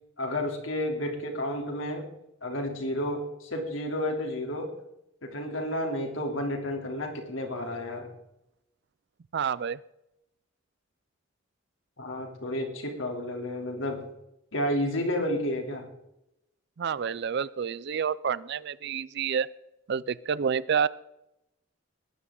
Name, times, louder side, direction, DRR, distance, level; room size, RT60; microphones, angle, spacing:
voice 1, 0.2-2.1 2.4-4.7 5.2-8.1 12.0-14.0 14.5-15.9, left 1 dB, 80° left, 3 dB, 3.2 m, -31 dB
voice 2, 9.3-9.8 16.8-19.5 19.9-20.9, right 7 dB, 55° right, 19 dB, 0.4 m, -28 dB
20.0 x 12.0 x 3.8 m, 0.85 s
head